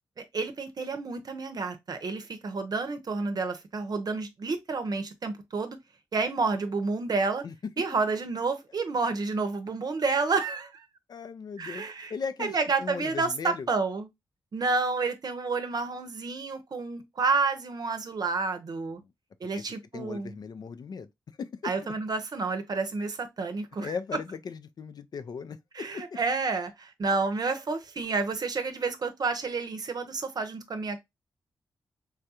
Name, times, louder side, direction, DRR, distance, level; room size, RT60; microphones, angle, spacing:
voice 1, 0.2-5.8 6.1-7.4 7.8-10.8 11.6-12.1 12.4-14.1 14.5-19.0 19.4-20.3 21.6-23.9 25.7-31.0, right 4 dB, 55° right, 0.7 m, -30 dB
voice 2, 7.4-7.8 11.1-13.7 19.0-19.1 19.5-21.1 21.4-21.9 23.8-26.2, left 5 dB, 55° left, 0.4 m, -38 dB
3.4 x 2.4 x 2.7 m
supercardioid pair, 45°, 8 cm